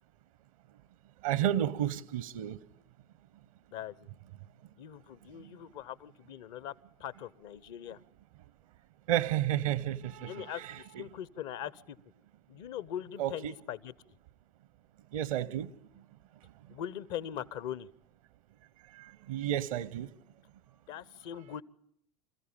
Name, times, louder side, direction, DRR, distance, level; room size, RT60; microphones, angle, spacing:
voice 1, 1.2-2.6 9.1-11.0 13.2-13.5 15.1-15.7 19.3-20.1, right 11 dB, 70° right, 0.8 m, -31 dB
voice 2, 3.7-4.1 4.8-6.7 7.0-8.0 10.2-12.0 12.5-13.9 16.7-17.9 20.9-21.6, left 10 dB, 65° left, 0.9 m, -41 dB
26.5 x 14.5 x 8.8 m
figure-of-eight pair, 70°, 18 cm